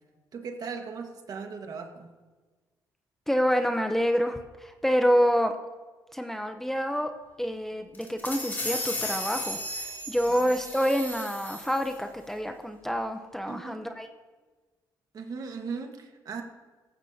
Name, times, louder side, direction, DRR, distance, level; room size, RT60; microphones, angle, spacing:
voice 1, 0.3-2.1 10.3-10.5 13.5-13.8 15.1-16.4, right 5 dB, 55° right, 4 dB, 1.5 m, -38 dB
voice 2, 3.3-5.5 6.1-7.1 7.4-14.1, equal, 5° left, 6 dB, 0.7 m, -27 dB
sound 1, 7.9-12.0, left 1 dB, 25° left, 2.7 m, -35 dB
18.5 x 15.0 x 2.8 m, 1.3 s
cardioid pair, 115°, 8 cm